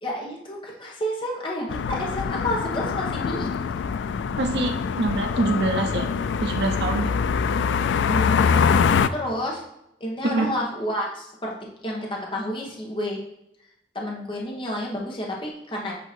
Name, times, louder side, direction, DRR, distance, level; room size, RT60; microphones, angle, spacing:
voice 1, 0.0-3.6 8.1-8.4 9.1-9.6 10.0-13.2 13.9-15.9, left 1 dB, 30° left, -2 dB, 1.2 m, -30 dB
sound 1, 1.7-9.1, left 6 dB, 85° left, 0.3 m, -24 dB
voice 2, 4.4-6.1 6.4-7.1 10.2-10.4, right 2 dB, 70° right, 4 dB, 0.8 m, -25 dB
8.3 x 2.9 x 4.5 m, 0.82 s
head